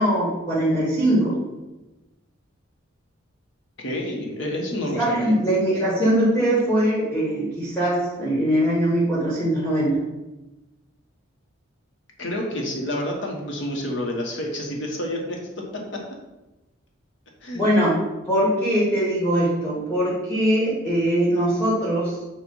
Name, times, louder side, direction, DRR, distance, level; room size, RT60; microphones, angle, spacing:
voice 1, 0.0-1.4 4.9-10.0 17.5-18.0 18.2-22.1, right 1 dB, 5° left, -8 dB, 1.6 m, -21 dB
voice 2, 3.8-5.4 12.2-15.4 17.4-17.6, left 1 dB, 60° left, 0 dB, 1.2 m, -28 dB
7.4 x 2.6 x 5.4 m, 1.0 s
head